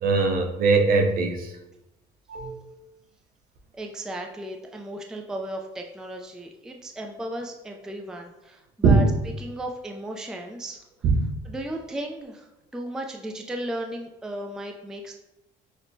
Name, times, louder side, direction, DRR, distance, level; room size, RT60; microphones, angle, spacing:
voice 1, 0.0-1.5 2.3-2.7 8.8-9.1 11.0-11.3, right 4 dB, 60° right, 4 dB, 0.6 m, -21 dB
voice 2, 3.7-9.0 9.4-10.8 11.4-12.5 12.7-15.2, right 1 dB, 5° right, 2 dB, 0.3 m, -35 dB
6.1 x 2.1 x 2.6 m, 0.92 s
cardioid pair, 110°, 17 cm